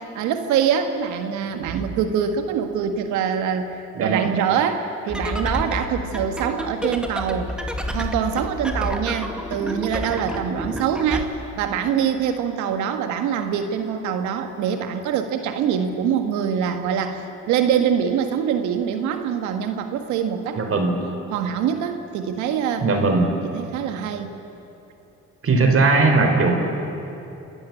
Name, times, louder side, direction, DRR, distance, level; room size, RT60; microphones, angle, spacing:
voice 1, 0.2-7.5 7.9-20.6 21.3-22.8 23.4-24.3, right 8 dB, 90° right, 7 dB, 1.8 m, -24 dB
voice 2, 3.9-4.3 20.5-21.0 22.8-23.4 25.4-26.6, right 3 dB, 50° right, 4 dB, 4.1 m, -19 dB
sound 1, 5.1-11.2, left 1 dB, 5° right, 2.3 m, -29 dB
28.0 x 13.0 x 9.8 m, 2.9 s
supercardioid pair, 75°, 29 cm